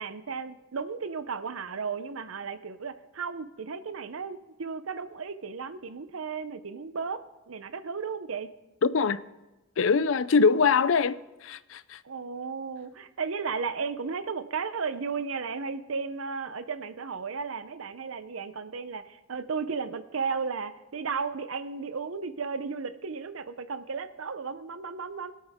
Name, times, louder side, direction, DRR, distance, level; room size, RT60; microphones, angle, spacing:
voice 1, 0.0-7.2 7.5-8.5 12.0-25.3, right 5 dB, 90° right, 0.7 m, -34 dB
voice 2, 8.8-9.2 9.8-12.0, left 5 dB, 75° left, 0.5 m, -23 dB
20.5 x 8.7 x 3.6 m
head